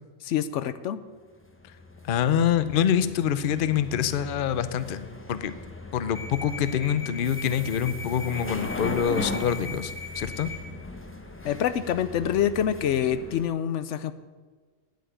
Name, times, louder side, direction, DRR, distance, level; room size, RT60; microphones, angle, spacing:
voice 1, 0.2-1.0 11.4-14.1, left 9 dB, 80° left, 13 dB, 0.9 m, -26 dB
sound 1, 1.4-13.5, left 2 dB, 10° left, 0.9 m, -37 dB
voice 2, 2.0-5.5 5.9-10.5, left 9 dB, 55° left, 13 dB, 0.7 m, -26 dB
9.4 x 8.3 x 9.0 m, 1.4 s
omnidirectional pair, 1.2 m